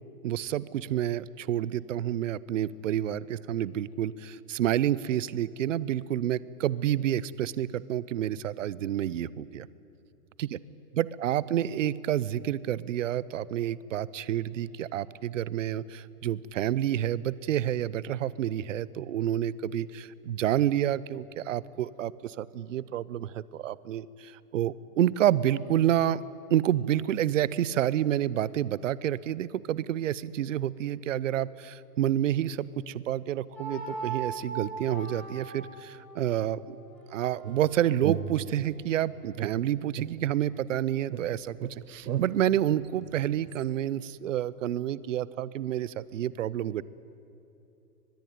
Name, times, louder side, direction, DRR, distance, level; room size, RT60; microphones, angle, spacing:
voice 1, 0.2-9.7 10.4-10.6 10.9-26.2 26.5-36.8 37.1-46.8, right 11 dB, 50° right, 20 dB, 0.7 m, -29 dB
sound 1, 33.5-39.4, right 5 dB, 5° left, 5.9 m, -41 dB
sound 2, 37.4-38.9 39.4-40.8 41.1-43.6, right 10 dB, 75° right, 1.1 m, -37 dB
23.5 x 21.5 x 9.3 m, 2.9 s
hypercardioid pair, 170°, 48 cm